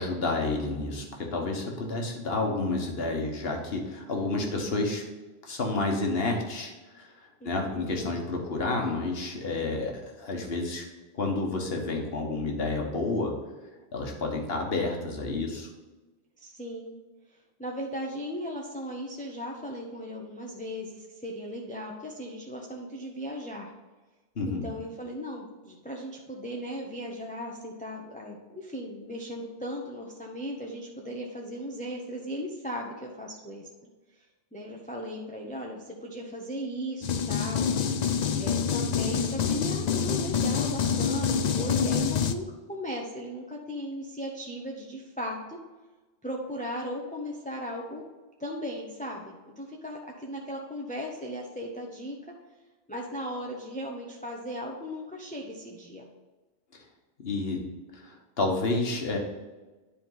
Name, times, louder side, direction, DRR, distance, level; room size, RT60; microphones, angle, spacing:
voice 1, 0.0-5.0 5.4-7.1 7.4-10.8 11.2-13.3 13.9-15.7 24.4-24.6 57.2-57.6 58.0-59.2, left 2 dB, 65° left, 1 dB, 1.6 m, -30 dB
voice 2, 7.4-7.8 16.4-17.0 17.3-23.7 24.5-33.7 34.2-37.7 38.4-45.6 46.2-48.0 48.4-52.2 52.9-56.1, equal, 10° left, -1 dB, 0.8 m, -37 dB
sound 1, 37.0-42.3, left 6 dB, 50° left, 0.5 m, -26 dB
10.0 x 4.4 x 3.9 m, 1.2 s
omnidirectional pair, 1.1 m